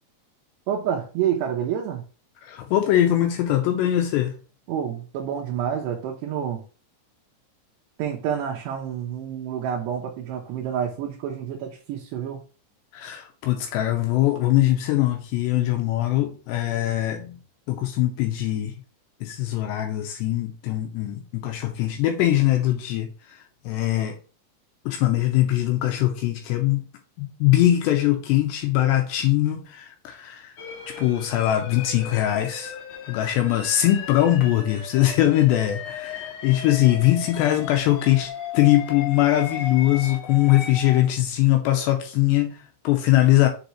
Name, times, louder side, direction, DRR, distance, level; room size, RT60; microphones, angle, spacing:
voice 1, 0.7-2.0 4.7-6.6 8.0-12.4, right 9 dB, 75° right, -1 dB, 2.7 m, -28 dB
voice 2, 2.4-4.3 12.9-17.4 17.7-18.7 19.2-23.4 23.7-24.2 24.9-26.8 27.2-30.5 30.9-32.8 33.1-43.5, left 14 dB, 85° left, 4 dB, 2.6 m, -22 dB
sound 1, 30.6-41.0, left 7 dB, 60° left, 1.8 m, -36 dB
6.9 x 5.2 x 3.0 m, 0.37 s
omnidirectional pair, 5.3 m